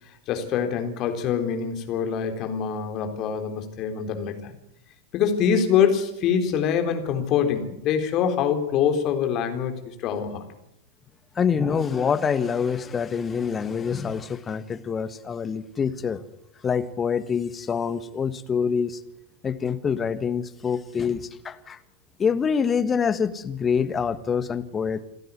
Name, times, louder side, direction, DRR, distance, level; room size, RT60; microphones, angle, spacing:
voice 1, 0.3-4.5 5.1-10.4, left 7 dB, 35° left, 6 dB, 4.0 m, -24 dB
voice 2, 11.3-16.2 16.6-19.0 19.4-21.8 22.2-25.0, left 6 dB, 20° left, 12 dB, 1.5 m, -26 dB
28.5 x 12.5 x 9.6 m, 0.82 s
figure-of-eight pair, 90°, 0 cm